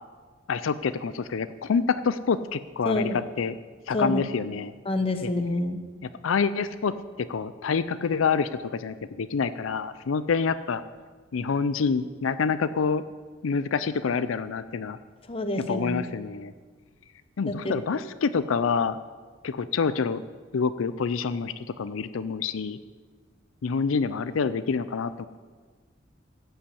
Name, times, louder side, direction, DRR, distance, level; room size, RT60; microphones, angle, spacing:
voice 1, 0.5-3.5 3.9-4.7 6.2-10.8 11.3-13.0 13.4-15.0 15.7-16.5 17.4-19.0 19.4-20.2 20.5-22.8 23.6-25.3, left 5 dB, 85° left, 13 dB, 0.4 m, -27 dB
voice 2, 2.8-3.2 3.9-4.2 4.9-5.8 15.3-16.1 17.4-17.8, left 1 dB, 30° left, 7 dB, 0.9 m, -28 dB
15.0 x 5.6 x 8.5 m, 1.5 s
head